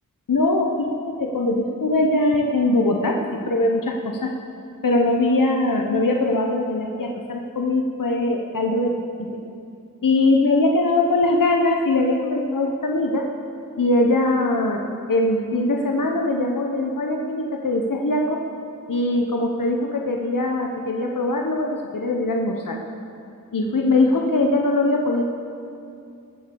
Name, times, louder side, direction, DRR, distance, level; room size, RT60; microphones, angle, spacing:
voice 1, 0.3-4.3 4.8-8.9 10.0-13.3 13.8-14.8 15.1-18.4 18.9-22.8 23.5-25.2, left 2 dB, 70° left, 2 dB, 1.0 m, -21 dB
20.5 x 6.9 x 7.0 m, 2.6 s
wide cardioid pair, 65°, 34 cm